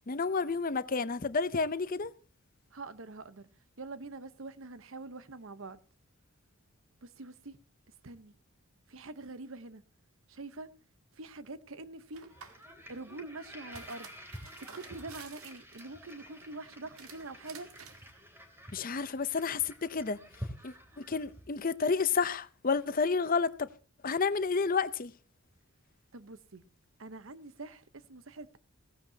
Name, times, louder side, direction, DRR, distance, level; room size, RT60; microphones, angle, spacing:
voice 1, 0.0-2.1 18.7-20.2 20.6-23.7 24.0-25.1, left 5 dB, 40° left, 0.6 m, -30 dB
voice 2, 2.7-3.5 3.8-5.8 7.0-7.6 8.0-8.4 8.9-9.8 10.3-10.7 11.2-12.3 12.9-14.1 14.6-17.7 26.1-26.6 27.0-28.6, right 3 dB, 65° right, 0.9 m, -45 dB
sound 1, 12.1-12.7 13.5-16.1 16.9-18.1, right 7 dB, 85° right, 1.7 m, -52 dB
sound 2, 12.3-21.6, equal, 10° right, 3.1 m, -49 dB
17.5 x 15.5 x 2.8 m
head